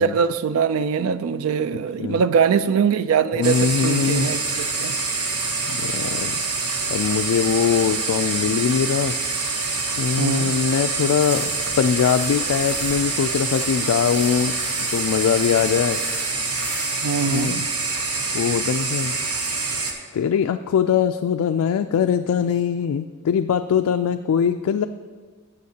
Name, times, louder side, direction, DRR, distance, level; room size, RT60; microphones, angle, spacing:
voice 1, 0.0-4.9 10.2-10.5 17.0-17.7, right 6 dB, 65° right, 13 dB, 0.4 m, -22 dB
voice 2, 3.3-4.3 5.7-6.4 6.9-9.1 10.0-11.5 11.8-14.5 14.9-16.0 17.2-17.7 18.3-19.1 20.1-24.9, left 7 dB, 75° left, 8 dB, 0.3 m, -22 dB
sound 1, 3.4-19.9, right 4 dB, 80° right, 1.1 m, -26 dB
sound 2, 11.2-17.5, left 3 dB, 5° left, 2.3 m, -39 dB
14.5 x 7.0 x 2.8 m, 1.5 s
head